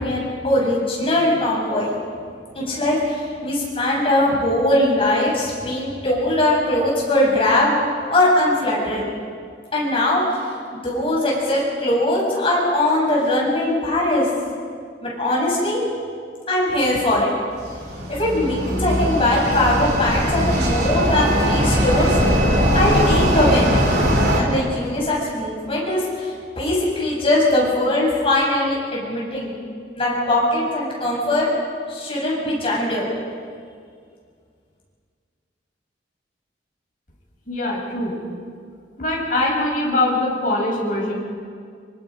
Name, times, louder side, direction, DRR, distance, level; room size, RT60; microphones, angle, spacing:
voice 1, 0.0-1.9 2.5-7.8 8.1-9.1 9.7-10.4 10.7-14.3 15.0-15.9 16.5-17.3 18.1-22.2 22.7-23.7 24.3-29.6 30.0-31.5 31.9-33.1, left 1 dB, 30° left, -4 dB, 7.7 m, -20 dB
sound 1, 17.5-24.4, equal, 60° right, 3.8 m, -20 dB
voice 2, 37.5-38.2 39.0-41.1, left 2 dB, 45° left, -3 dB, 6.7 m, -22 dB
27.5 x 24.0 x 5.3 m, 2.1 s
head